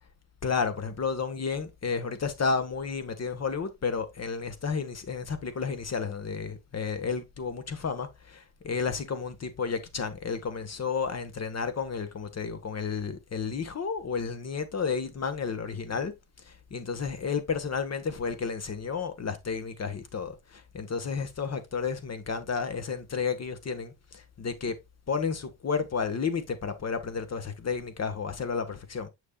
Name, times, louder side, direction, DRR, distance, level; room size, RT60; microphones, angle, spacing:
voice 1, 0.4-16.1 16.4-24.8 25.1-29.1, left 5 dB, 40° left, 1.3 m, -32 dB
6.7 x 6.4 x 2.3 m
cardioid pair, 95°, 41 cm